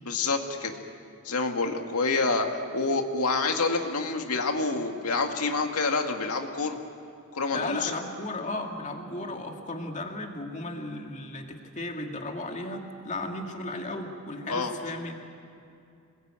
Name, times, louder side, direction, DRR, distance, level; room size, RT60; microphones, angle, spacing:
voice 1, 0.0-0.7 1.2-6.8 7.3-7.9 14.5-14.8, left 3 dB, 90° left, 4 dB, 2.0 m, -27 dB
voice 2, 7.5-15.2, left 2 dB, 35° left, 3 dB, 2.2 m, -35 dB
27.0 x 21.0 x 9.0 m, 2.5 s
head